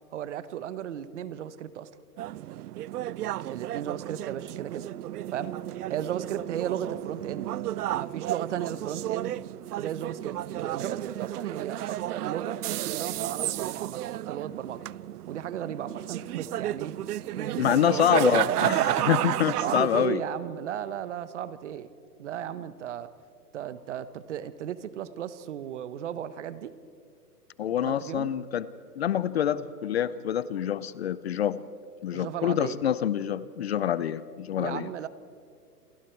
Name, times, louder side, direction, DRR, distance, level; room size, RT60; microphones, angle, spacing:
voice 1, 0.1-1.9 3.5-4.9 5.3-5.5 5.9-7.5 7.9-9.3 9.7-14.0 14.3-14.8 15.3-16.9 17.3-18.1 19.6-21.9 22.2-23.1 23.5-26.7 27.8-28.3 32.1-32.8 34.6-35.1, right 10 dB, 45° right, 14 dB, 1.2 m, -35 dB
sound 1, 2.2-20.1, right 13 dB, 70° right, 0.6 m, -32 dB
voice 2, 17.6-20.2 27.6-28.7 29.0-31.6 32.0-34.9, left 10 dB, 40° left, 17 dB, 0.6 m, -26 dB
28.5 x 24.5 x 4.6 m, 2.4 s
hypercardioid pair, 160°, 48 cm